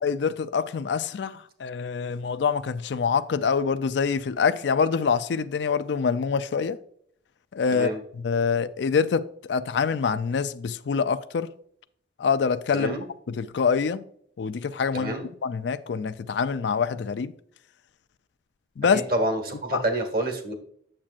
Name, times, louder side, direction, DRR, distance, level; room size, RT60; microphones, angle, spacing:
voice 1, 0.0-6.8 7.5-11.5 12.2-13.0 13.3-14.0 14.4-15.1 15.4-17.3 18.8-19.0 19.7-19.8, left 6 dB, 70° left, 0.4 m, -25 dB
voice 2, 12.7-13.1 14.9-15.3 19.1-20.5, right 1 dB, 50° right, 1.5 m, -27 dB
8.7 x 7.5 x 2.4 m
head